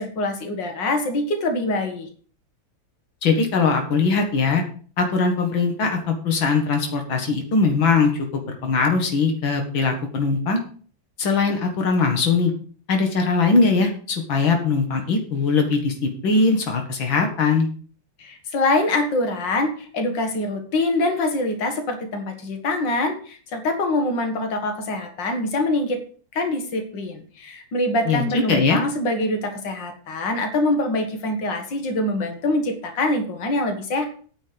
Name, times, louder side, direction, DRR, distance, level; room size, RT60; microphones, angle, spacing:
voice 1, 0.0-2.1 18.2-26.0 26.3-34.1, left 2 dB, 70° left, 5 dB, 2.4 m, -24 dB
voice 2, 3.2-4.6 5.0-10.6 11.2-12.5 12.9-17.7 28.1-28.8, left 4 dB, 90° left, 4 dB, 2.4 m, -21 dB
9.5 x 6.4 x 6.8 m, 0.43 s
omnidirectional pair, 2.1 m